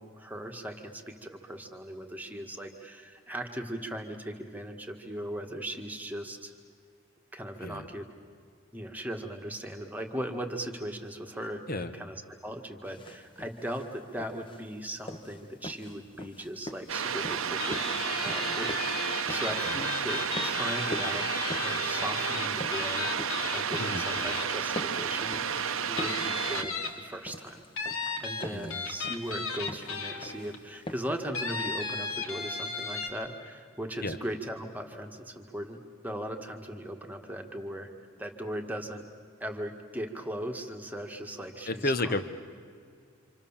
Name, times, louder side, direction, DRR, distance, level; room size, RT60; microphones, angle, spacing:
voice 1, 0.0-6.5 7.3-8.1 8.7-23.1 23.5-25.4 25.9-27.6 28.2-37.9 38.2-39.0 39.4-42.2, right 1 dB, 10° right, 3 dB, 1.7 m, -38 dB
sound 1, 12.8-31.2, left 1 dB, 25° left, 1.2 m, -44 dB
sound 2, 16.9-26.6, right 7 dB, 70° right, 0.9 m, -31 dB
sound 3, 17.6-25.0 25.5-25.6 26.0-27.2 27.8-30.6 31.3-33.1, left 4 dB, 80° left, 3.0 m, -35 dB
voice 2, 28.5-28.8 34.0-34.2 41.7-42.2, left 2 dB, 40° left, 10 dB, 1.3 m, -32 dB
27.5 x 26.5 x 7.3 m, 2.2 s
head